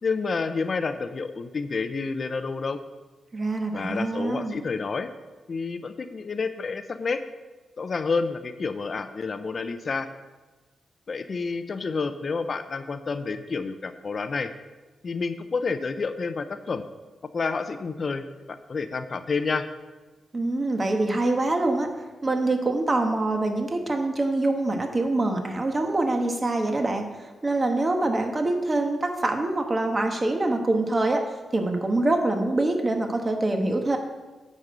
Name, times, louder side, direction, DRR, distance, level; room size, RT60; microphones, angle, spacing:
voice 1, 0.0-2.8 3.7-5.1 5.5-7.2 7.8-10.1 11.1-14.5 15.0-16.8 17.3-18.2 18.7-19.7, left 4 dB, 50° left, 10 dB, 0.6 m, -29 dB
voice 2, 3.3-4.6 20.3-21.9 22.2-27.1 27.4-31.2 31.5-34.0, right 2 dB, 30° right, 4 dB, 1.3 m, -25 dB
9.6 x 5.3 x 6.7 m, 1.2 s
cardioid pair, 75°, 0 cm